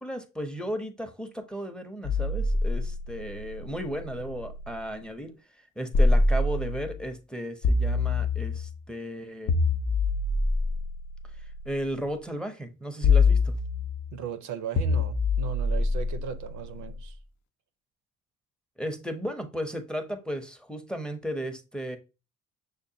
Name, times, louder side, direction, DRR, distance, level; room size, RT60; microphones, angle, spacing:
voice 1, 0.0-5.4 5.8-9.5 11.7-13.5 18.8-22.0, equal, 5° left, 0.6 m, -35 dB
sound 1, 2.0-4.8 5.9-7.0 7.6-8.8 9.5-11.7 13.0-14.1 14.8-16.9, left 3 dB, 70° left, 0.5 m, -25 dB
voice 2, 14.1-17.2, right 9 dB, 70° right, 0.6 m, -37 dB
6.4 x 2.2 x 2.6 m
cardioid pair, 90°, 30 cm